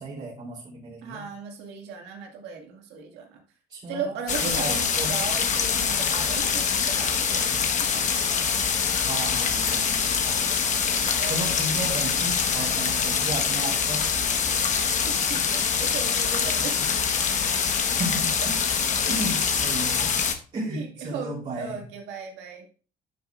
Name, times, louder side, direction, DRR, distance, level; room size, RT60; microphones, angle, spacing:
voice 1, 0.0-1.3 3.7-4.1 4.4-5.1 9.1-10.5 11.2-14.1 16.8-16.9 17.9-18.5 19.0-20.2 20.5-21.8, right 2 dB, 40° right, -8 dB, 3.7 m, -34 dB
voice 2, 1.0-3.4 3.9-6.6 6.9-8.1 9.7-10.1 10.4-11.6 12.4-12.7 14.9-16.7 20.7-22.7, right 5 dB, 85° right, 2 dB, 2.2 m, -37 dB
sound 1, 4.3-20.3, left 6 dB, 45° left, 1.3 m, -24 dB
11.0 x 6.9 x 2.5 m, 0.38 s
cardioid pair, 110°, 17 cm